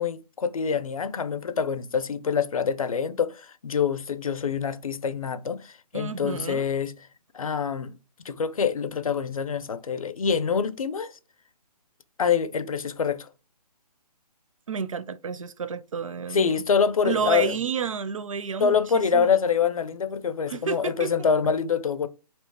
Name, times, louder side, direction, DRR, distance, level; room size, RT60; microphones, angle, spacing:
voice 1, 0.0-6.9 7.3-8.0 8.2-11.2 12.2-13.3 16.3-17.6 18.6-22.1, left 6 dB, 55° left, 0.6 m, -25 dB
voice 2, 5.9-6.7 14.7-16.5 17.0-19.4 20.5-21.1, right 6 dB, 55° right, 0.5 m, -30 dB
5.2 x 3.0 x 3.3 m
hypercardioid pair, 175°, 21 cm